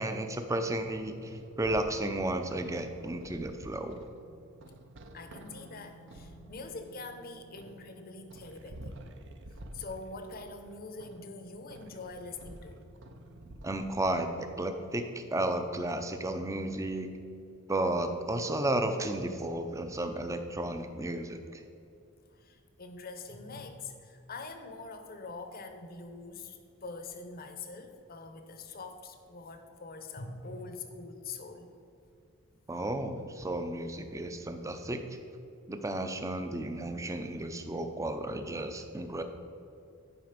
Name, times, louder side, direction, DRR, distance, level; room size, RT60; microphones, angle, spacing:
voice 1, 0.0-4.0 13.6-17.1 17.7-21.6 32.7-35.0 35.7-39.2, right 1 dB, 15° right, 7 dB, 0.5 m, -33 dB
sound 1, 0.7-14.0, right 1 dB, 55° right, 0.7 m, -50 dB
voice 2, 5.1-9.0 9.5-12.9 22.3-31.7, left 3 dB, 45° left, 7 dB, 0.8 m, -44 dB
11.0 x 5.1 x 5.1 m, 2.6 s
head